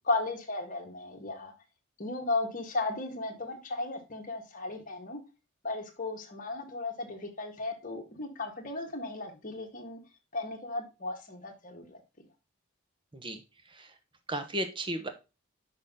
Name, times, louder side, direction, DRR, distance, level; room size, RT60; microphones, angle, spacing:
voice 1, 0.0-1.5 2.0-5.2 5.6-10.0 10.3-12.0, left 2 dB, 40° left, 2 dB, 1.6 m, -35 dB
voice 2, 14.3-15.1, right 1 dB, 25° right, 8 dB, 0.9 m, -34 dB
6.5 x 5.1 x 3.7 m, 0.27 s
head